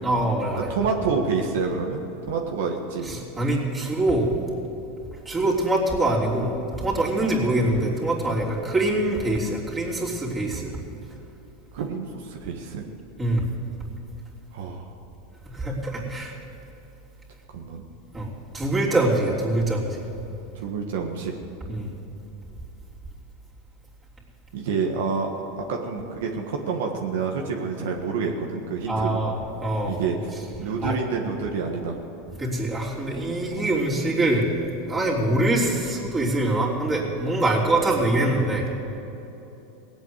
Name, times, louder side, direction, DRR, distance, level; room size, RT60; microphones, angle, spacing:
voice 1, 0.0-0.7 3.0-4.3 5.2-6.5 6.8-10.7 13.2-13.4 15.4-16.3 18.1-20.0 21.7-21.9 28.9-30.0 30.8-31.0 32.4-34.5 34.9-38.6, right 1 dB, 20° right, -4 dB, 3.4 m, -24 dB
voice 2, 0.5-2.0 2.3-3.1 11.7-12.8 14.5-14.9 17.5-17.8 20.5-21.3 24.5-25.3 25.6-29.2 29.8-30.3 30.6-32.0 33.6-33.7, right 5 dB, 80° right, 1 dB, 1.6 m, -28 dB
18.5 x 8.3 x 8.0 m, 3.0 s
supercardioid pair, 115°, 0 cm